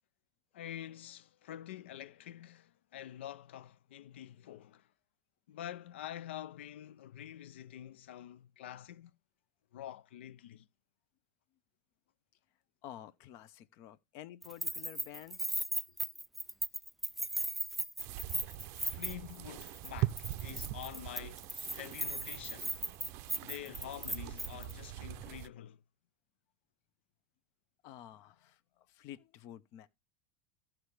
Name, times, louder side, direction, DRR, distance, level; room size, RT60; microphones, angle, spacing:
voice 1, 0.5-4.9 5.5-9.1 9.7-10.7 18.8-21.5 21.7-22.8 23.4-25.8, left 11 dB, 80° left, 0.4 m, -47 dB
voice 2, 12.8-15.5 15.9-16.2 18.5-18.6 27.8-29.9, left 12 dB, 55° left, 0.8 m, -51 dB
Keys jangling, 14.4-19.4 19.6-19.9 20.2-24.7, right 1 dB, ahead, 0.5 m, -37 dB
sound 1, 18.0-25.5, right 15 dB, 55° right, 0.5 m, -42 dB
14.5 x 6.0 x 3.2 m
hypercardioid pair, 105°, 6 cm